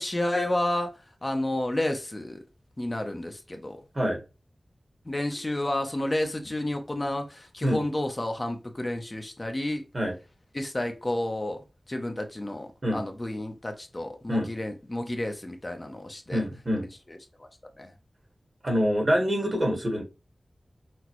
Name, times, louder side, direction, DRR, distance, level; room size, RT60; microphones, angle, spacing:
voice 1, 0.0-2.4 2.8-3.8 5.1-9.8 10.5-11.6 11.9-16.4 17.1-17.5 17.8-17.9, left 1 dB, 30° left, 4 dB, 0.7 m, -31 dB
voice 2, 16.3-16.9 18.6-20.0, equal, 40° right, 2 dB, 1.5 m, -25 dB
6.0 x 2.2 x 3.0 m, 0.29 s
wide cardioid pair, 70°, 0 cm